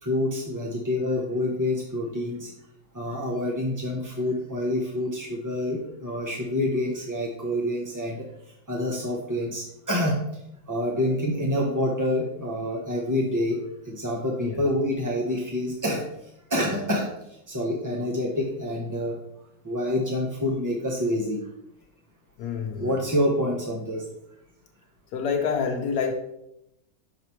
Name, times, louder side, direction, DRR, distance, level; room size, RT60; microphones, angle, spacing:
voice 1, 0.0-2.5 2.9-8.2 8.7-10.2 10.7-16.0 16.5-17.1 17.5-19.2 19.6-21.4 22.8-24.0, left 1 dB, 20° right, -1 dB, 0.5 m, -27 dB
voice 2, 22.4-23.0 25.1-26.1, left 6 dB, 85° left, 3 dB, 1.2 m, -27 dB
5.8 x 5.6 x 4.4 m, 0.84 s
omnidirectional pair, 1.6 m